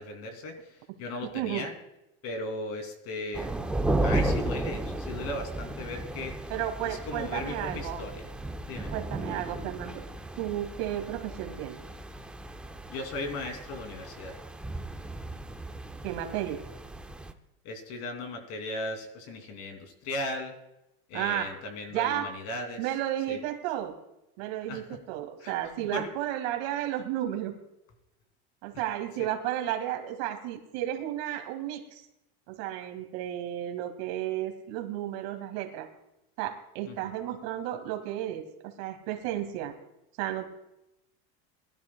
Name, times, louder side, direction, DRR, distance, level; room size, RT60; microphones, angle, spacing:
voice 1, 0.0-1.7 2.2-3.5 4.0-6.5 6.8-8.3 8.7-8.9 12.9-14.4 17.6-20.6 21.1-22.9 23.3-23.4 24.7-24.8 25.4-26.1 36.9-37.0, left 2 dB, 50° left, 5 dB, 2.8 m, -37 dB
voice 2, 1.3-1.6 6.5-8.0 8.9-10.0 10.4-11.8 16.0-16.6 21.1-21.5 21.9-22.3 22.8-23.9 24.4-27.5 28.6-32.0 32.5-35.9 36.4-39.7 40.2-40.5, right 12 dB, 70° right, 5 dB, 2.1 m, -33 dB
sound 1, 3.3-17.3, right 1 dB, 5° right, 0.4 m, -34 dB
21.0 x 12.5 x 2.3 m, 0.89 s
cardioid pair, 155°, 32 cm